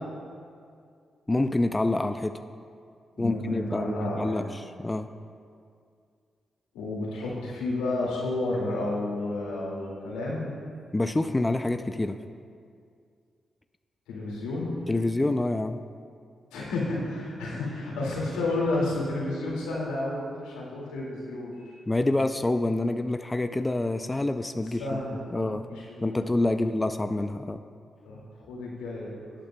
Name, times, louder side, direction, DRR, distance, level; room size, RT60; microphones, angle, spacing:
voice 1, 1.3-2.3 3.2-5.1 10.9-12.2 14.9-15.8 21.9-25.0 25.3-25.6 26.0-27.6, left 2 dB, 20° left, 8 dB, 0.4 m, -27 dB
voice 2, 3.2-4.4 6.7-10.5 14.1-14.8 16.5-21.8 24.6-25.2 25.5-26.2 26.5-26.6 28.0-29.3, left 2 dB, 85° left, -5 dB, 2.2 m, -31 dB
18.0 x 8.9 x 2.3 m, 2.2 s
hypercardioid pair, 40°, 0 cm